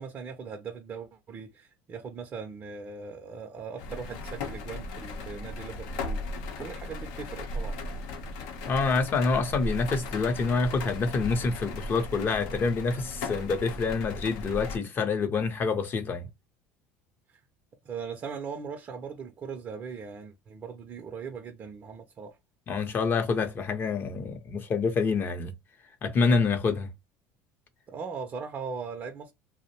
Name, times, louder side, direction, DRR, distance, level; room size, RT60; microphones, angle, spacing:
voice 1, 0.0-6.2 6.5-7.8 17.3-17.4 17.8-22.4 27.9-29.3, right 5 dB, 35° right, 0.5 m, -39 dB
sound 1, 3.8-14.8, left 2 dB, 80° left, 0.7 m, -37 dB
voice 2, 8.7-16.3 22.7-25.5 26.0-26.9, left 4 dB, 40° left, 0.6 m, -27 dB
2.5 x 2.0 x 2.8 m
supercardioid pair, 110°, 6 cm